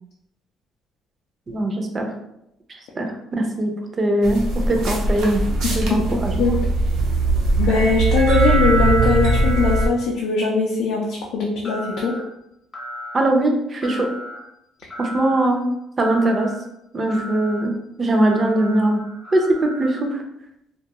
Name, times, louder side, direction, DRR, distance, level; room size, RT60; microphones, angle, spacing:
voice 1, 1.5-2.1 3.0-3.7 4.0-5.4 5.7-6.3 13.1-14.1 15.0-15.6 16.0-16.5 16.9-19.0 19.3-20.2, right 1 dB, 30° right, 3 dB, 0.5 m, -20 dB
sound 1, 4.2-9.9, right 2 dB, 80° right, 0.6 m, -20 dB
voice 2, 6.1-6.6 7.6-12.2, left 4 dB, 85° left, -3 dB, 0.4 m, -21 dB
sound 2, 11.6-12.2 12.7-13.3 13.8-14.4 14.9-15.5 16.0-16.6 17.1-17.6 18.1-20.1, equal, 20° left, 0.6 m, -36 dB
2.3 x 2.3 x 2.8 m, 0.81 s
cardioid pair, 130°, 0 cm